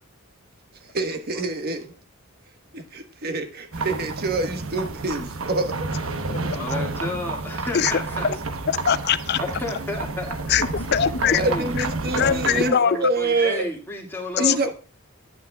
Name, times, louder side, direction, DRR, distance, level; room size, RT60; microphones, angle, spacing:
voice 1, 0.9-1.9 2.7-5.7 11.3-13.7 14.4-14.7, right 2 dB, 45° right, 1.2 m, -26 dB
sound 1, 3.7-12.7, right 3 dB, 70° right, 1.0 m, -30 dB
voice 2, 6.5-8.3 9.4-10.7 11.2-11.7 12.1-14.7, left 2 dB, 10° left, 1.9 m, -32 dB
voice 3, 8.7-9.4 10.5-11.4 11.7-11.9 12.2-13.0 14.4-14.5, left 8 dB, 50° left, 0.5 m, -22 dB
10.0 x 8.5 x 2.3 m
head